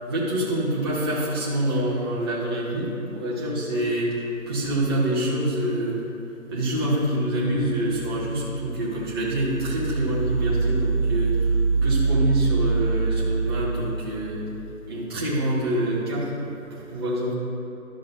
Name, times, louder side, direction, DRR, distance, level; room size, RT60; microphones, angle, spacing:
voice 1, 0.1-6.0 6.5-14.4 14.9-17.3, right 1 dB, 15° right, -7 dB, 1.0 m, -26 dB
sound 1, 7.5-14.9, right 4 dB, 80° right, 2.0 m, -25 dB
12.0 x 6.3 x 3.9 m, 2.9 s
figure-of-eight pair, 160°, 44 cm